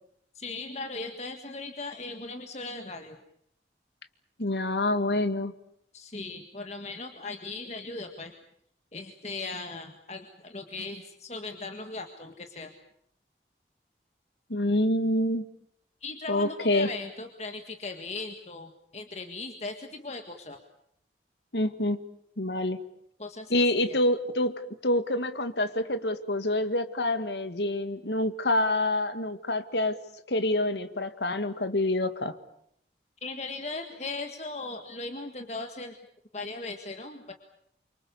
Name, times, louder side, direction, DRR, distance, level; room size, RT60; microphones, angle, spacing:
voice 1, 0.4-3.2 5.9-8.3 8.9-12.7 16.0-20.6 23.2-23.5 33.2-35.9 36.3-37.3, left 3 dB, 40° left, 5 dB, 1.8 m, -38 dB
voice 2, 4.4-5.5 14.5-15.5 16.3-16.9 21.5-22.0 22.4-22.8 23.5-30.0 30.3-32.4, left 1 dB, 80° left, 10 dB, 1.9 m, -27 dB
28.0 x 25.0 x 7.0 m, 0.71 s
head